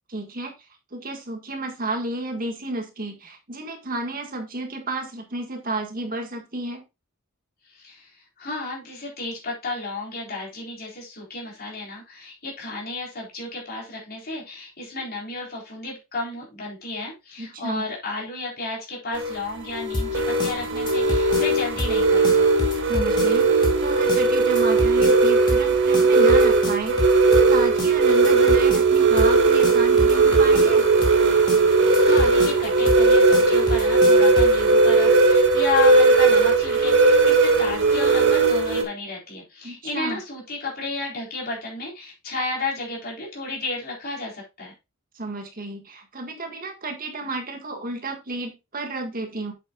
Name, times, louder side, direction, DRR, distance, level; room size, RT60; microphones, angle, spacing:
voice 1, 0.1-0.5 0.9-6.8 17.4-17.8 22.9-30.9 39.6-40.2 45.2-49.5, right 2 dB, 40° right, 4 dB, 1.7 m, -32 dB
voice 2, 7.7-22.5 31.7-44.7, left 3 dB, 45° left, -2 dB, 3.9 m, -32 dB
sound 1, 19.1-38.8, right 3 dB, 60° right, 1.6 m, -18 dB
sound 2, 19.9-34.6, left 1 dB, 20° left, 2.3 m, -29 dB
8.4 x 7.5 x 2.4 m, 0.25 s
head